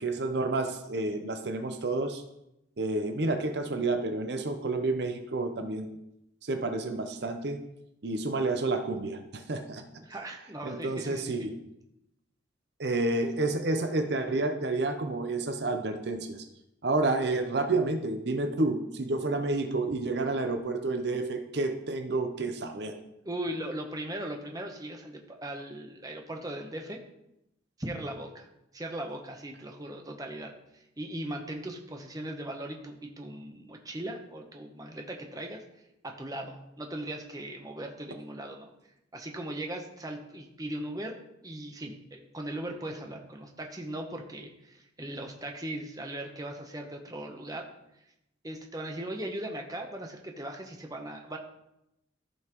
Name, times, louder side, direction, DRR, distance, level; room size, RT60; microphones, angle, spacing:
voice 1, 0.0-2.2 2.8-5.9 6.4-7.6 8.0-9.8 10.6-11.5 12.8-16.4 16.8-23.0, right 2 dB, 55° right, 7 dB, 0.7 m, -30 dB
voice 2, 10.0-11.2 23.2-27.0 27.8-28.5 28.7-35.6 36.0-38.7 39.1-41.2 41.4-47.7 48.4-51.4, right 1 dB, 20° right, 2 dB, 0.8 m, -38 dB
14.0 x 5.5 x 3.0 m, 0.84 s
head